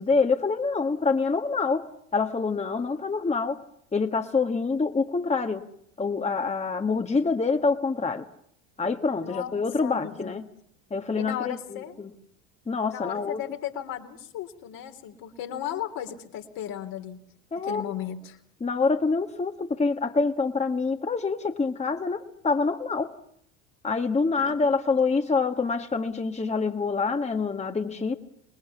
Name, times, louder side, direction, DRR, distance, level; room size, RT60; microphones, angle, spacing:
voice 1, 0.0-1.9 2.1-3.6 3.9-5.6 6.0-8.3 8.8-10.4 10.9-12.1 12.7-13.4 17.5-17.8 18.6-23.1 23.8-28.1, left 4 dB, 15° left, 5 dB, 1.6 m, -26 dB
voice 2, 9.2-10.3 11.2-12.0 12.9-17.2 17.6-18.4 24.4-24.6, left 10 dB, 60° left, 4 dB, 3.2 m, -35 dB
27.5 x 20.5 x 7.1 m, 0.70 s
hypercardioid pair, 75°, 39 cm